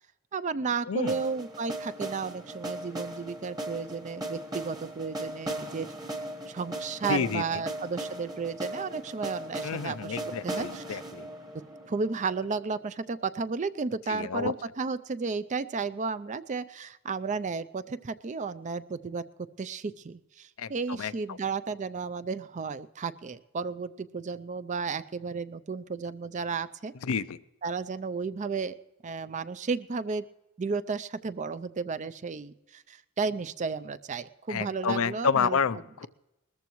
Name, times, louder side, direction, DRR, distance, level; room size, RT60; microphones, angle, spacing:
voice 1, 0.3-5.9 6.5-10.2 10.4-11.0 11.9-19.2 19.6-26.9 27.6-28.7 29.0-30.3 30.6-35.6, right 4 dB, 35° right, 14 dB, 0.4 m, -33 dB
voice 2, 0.9-1.2 7.1-7.4 9.6-11.3 14.1-14.5 20.6-21.1 27.0-27.4 34.5-36.1, left 6 dB, 70° left, 15 dB, 0.5 m, -29 dB
sound 1, 1.1-13.0, right 1 dB, 20° right, 1.2 m, -38 dB
20.0 x 14.0 x 3.1 m, 0.95 s
head